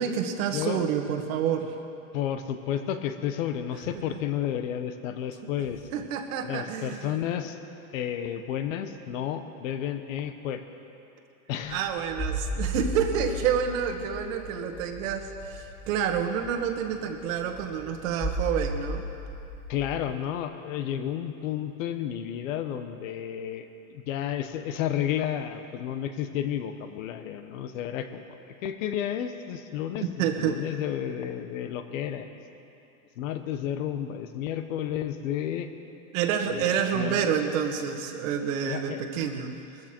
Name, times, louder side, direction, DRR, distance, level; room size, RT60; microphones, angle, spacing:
voice 1, 0.0-1.8 5.9-7.2 11.7-19.0 30.2-30.6 36.1-39.5, right 8 dB, 65° right, 5 dB, 1.7 m, -28 dB
voice 2, 0.5-0.8 2.1-5.8 6.4-7.6 7.9-10.6 11.5-11.8 19.7-23.7 23.9-28.2 28.6-30.1 30.4-32.3 33.2-35.7 36.4-37.3 38.6-39.0, left 10 dB, 65° left, 8 dB, 1.2 m, -31 dB
sound 1, 11.6-20.1, equal, 10° left, 1.6 m, -35 dB
20.5 x 14.0 x 4.6 m, 2.7 s
supercardioid pair, 150°, 43 cm